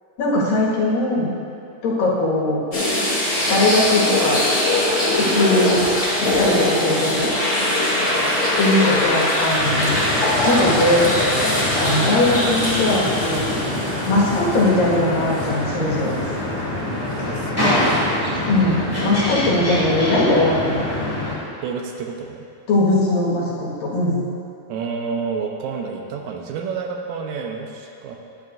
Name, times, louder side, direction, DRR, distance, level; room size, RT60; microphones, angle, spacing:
voice 1, 0.2-1.3 1.8-2.6 3.5-4.4 5.1-5.8 6.2-7.3 8.6-10.0 10.5-11.1 11.8-13.5 14.1-16.2 18.4-20.8 22.7-24.2, left 2 dB, 80° left, -7 dB, 3.5 m, -20 dB
sound 1, 2.7-14.9 15.4-15.5 17.8-18.0, left 1 dB, 30° left, 1.6 m, -21 dB
sound 2, 9.6-21.3, left 1 dB, 5° left, 1.5 m, -25 dB
voice 2, 17.2-18.0 21.6-22.4 24.7-28.2, right 5 dB, 85° right, 2 dB, 2.5 m, -29 dB
11.5 x 9.8 x 2.6 m, 2.5 s
omnidirectional pair, 4.0 m